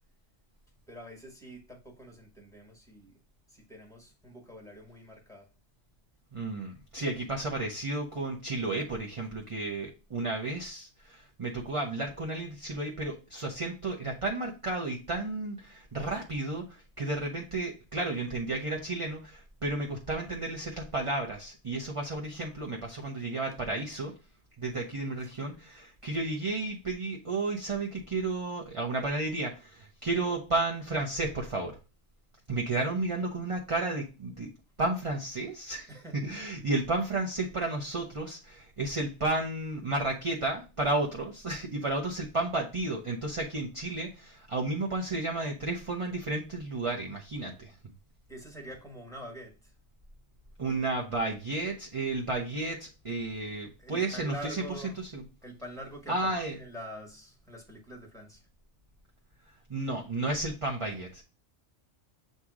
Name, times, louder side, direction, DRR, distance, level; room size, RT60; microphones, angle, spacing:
voice 1, 0.9-3.1 3.5-5.5 7.1-7.2 35.9-36.2 48.3-49.7 53.8-55.0 55.4-56.1 56.5-58.4, equal, 5° left, 1 dB, 1.4 m, -45 dB
voice 2, 6.3-24.1 24.6-31.8 32.5-34.5 34.8-47.7 50.6-54.6 55.0-55.2 56.1-56.6 59.7-61.2, right 2 dB, 30° right, 0 dB, 0.7 m, -32 dB
7.4 x 2.8 x 4.8 m, 0.32 s
omnidirectional pair, 1.2 m